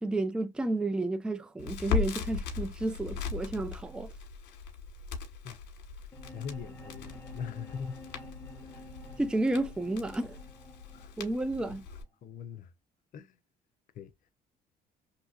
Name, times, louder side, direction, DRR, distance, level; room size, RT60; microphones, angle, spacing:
voice 1, 0.0-4.1 9.2-10.4 11.2-11.8, right 2 dB, 5° right, 0.4 m, -31 dB
Crackle, 1.6-12.0, left 5 dB, 75° left, 1.4 m, -38 dB
voice 2, 6.0-8.0 8.6-8.8 10.9-11.2 11.5-11.6 12.2-12.7 13.1-13.4 13.9-14.3, left 7 dB, 55° left, 0.6 m, -42 dB
sound 1, 6.1-12.1, left 1 dB, 15° left, 1.0 m, -50 dB
3.1 x 2.8 x 2.3 m
cardioid pair, 110°, 17 cm